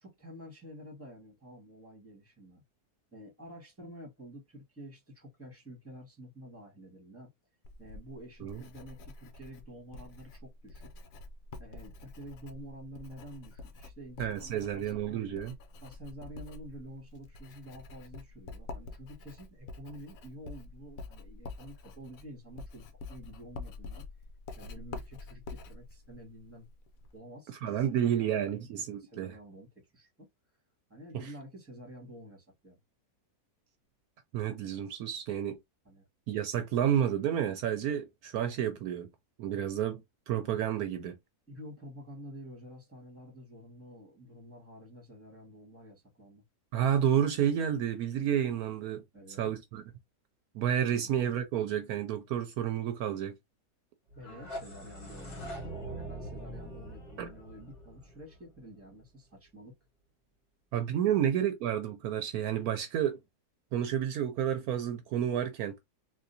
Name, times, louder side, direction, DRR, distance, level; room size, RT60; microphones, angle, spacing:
voice 1, 0.0-2.6 3.1-7.3 7.8-10.9 11.6-15.3 15.8-24.0 24.6-26.7 27.1-30.3 30.9-32.8 35.8-36.1 41.5-46.4 49.1-49.5 50.9-51.2 54.1-59.7 61.1-61.2, equal, 10° right, 1.5 m, -49 dB
Writing, 7.6-27.2, left 3 dB, 70° left, 1.0 m, -47 dB
voice 2, 14.2-15.5 27.6-29.3 31.1-31.3 34.3-35.6 36.3-39.1 39.4-41.2 46.7-49.0 49.4-49.8 50.5-53.3 57.2-57.3 60.7-63.2 63.7-65.8, right 10 dB, 75° right, 1.0 m, -30 dB
sound 1, 54.1-59.0, right 1 dB, 50° left, 1.6 m, -43 dB
3.6 x 2.7 x 2.7 m
omnidirectional pair, 1.6 m